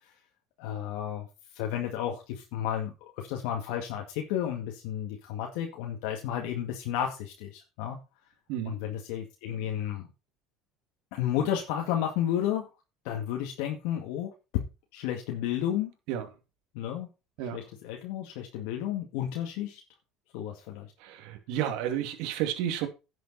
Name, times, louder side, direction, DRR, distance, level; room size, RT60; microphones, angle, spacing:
voice 1, 0.6-1.3 1.5-8.0 8.7-10.1 11.1-12.7 13.0-14.3 14.9-15.9 16.7-17.1 17.5-19.8 20.3-20.9, left 10 dB, 75° left, 2.0 m, -32 dB
voice 2, 21.0-22.9, right 10 dB, 70° right, 2.4 m, -31 dB
11.0 x 7.6 x 4.2 m
supercardioid pair, 110°, 0 cm